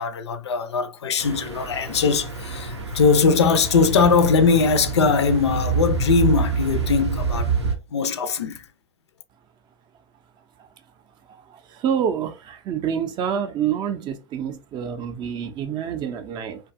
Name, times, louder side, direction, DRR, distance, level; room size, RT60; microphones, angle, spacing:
voice 1, 0.0-7.5 7.9-8.6, left 5 dB, 80° left, 0.4 m, -20 dB
sound 1, 1.2-7.8, right 4 dB, 90° right, 0.5 m, -27 dB
voice 2, 11.8-16.6, right 8 dB, 35° right, 0.4 m, -27 dB
2.6 x 2.2 x 2.4 m
hypercardioid pair, 90°, 14 cm